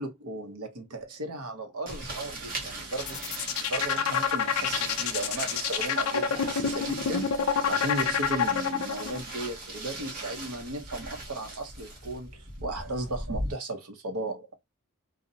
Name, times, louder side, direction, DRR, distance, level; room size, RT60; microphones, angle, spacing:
voice 1, 0.0-14.5, right 2 dB, 75° right, 0.8 m, -36 dB
sound 1, 1.9-13.5, right 2 dB, 40° right, 0.9 m, -39 dB
sound 2, 2.9-9.2, left 7 dB, 65° left, 0.4 m, -27 dB
2.7 x 2.1 x 2.6 m
head